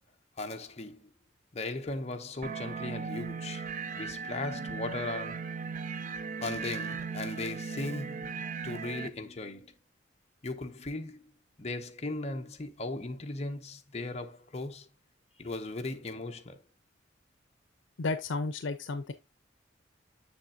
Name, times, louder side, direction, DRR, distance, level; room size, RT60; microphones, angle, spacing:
voice 1, 0.4-1.1 1.5-5.6 6.4-9.7 10.4-11.2 11.6-14.9 15.4-16.6, left 2 dB, 35° left, 0.8 m, -38 dB
sound 1, 2.4-9.1, right 5 dB, 45° right, 0.5 m, -37 dB
voice 2, 18.0-19.1, left 3 dB, 80° left, 0.6 m, -32 dB
7.2 x 6.4 x 2.5 m
head